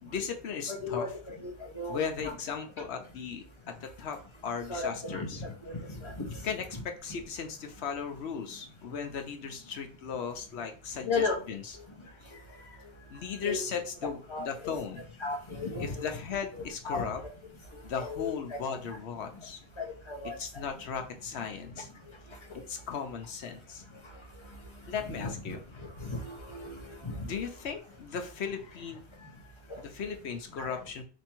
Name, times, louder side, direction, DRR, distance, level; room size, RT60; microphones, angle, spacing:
voice 1, 0.0-1.1 1.9-4.2 4.4-5.4 6.4-11.8 12.1-15.1 15.8-17.2 17.8-19.6 20.4-21.9 22.7-23.8 24.9-25.6 27.2-31.0, left 6 dB, 80° left, 5 dB, 1.0 m, -37 dB
voice 2, 0.7-2.0 2.2-2.3 4.7-6.4 6.7-6.8 11.0-11.4 13.4-13.6 14.3-14.5 15.2-16.1 16.5-17.1 18.0-18.6 19.8-20.4 25.0-25.6 26.0-27.2 30.6-30.8, left 3 dB, 30° left, 2 dB, 0.9 m, -35 dB
3.4 x 2.9 x 4.4 m, 0.38 s
omnidirectional pair, 1.1 m